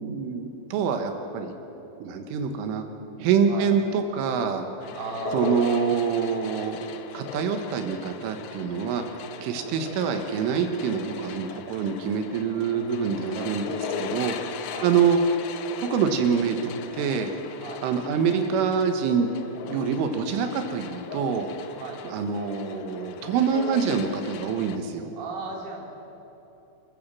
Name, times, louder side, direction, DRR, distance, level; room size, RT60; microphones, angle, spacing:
voice 1, 0.0-1.6 2.0-2.8 3.2-4.7 5.3-6.9 7.1-9.0 9.4-14.4 14.8-15.2 15.8-17.3 17.8-19.3 19.7-21.5 22.1-25.1, right 6 dB, 90° right, 6 dB, 3.9 m, -25 dB
sound 1, 4.8-24.8, left 8 dB, 75° left, 3.1 m, -38 dB
voice 2, 4.9-5.7 9.5-9.7 12.9-14.2 14.7-14.9 17.6-17.8 21.8-22.0 25.2-25.8, right 4 dB, 25° right, -2 dB, 3.2 m, -37 dB
29.0 x 14.5 x 7.6 m, 3.0 s
omnidirectional pair, 5.5 m